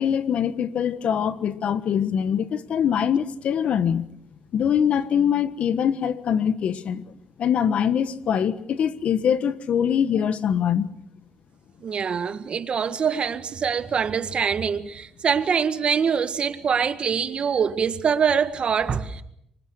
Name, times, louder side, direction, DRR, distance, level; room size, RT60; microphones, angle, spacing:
voice 1, 0.0-4.1 4.5-7.0 7.4-10.9, left 8 dB, 65° left, 1.4 m, -23 dB
voice 2, 11.8-19.2, right 7 dB, 50° right, 1.8 m, -24 dB
26.5 x 24.5 x 6.6 m
cardioid pair, 75°, 2 cm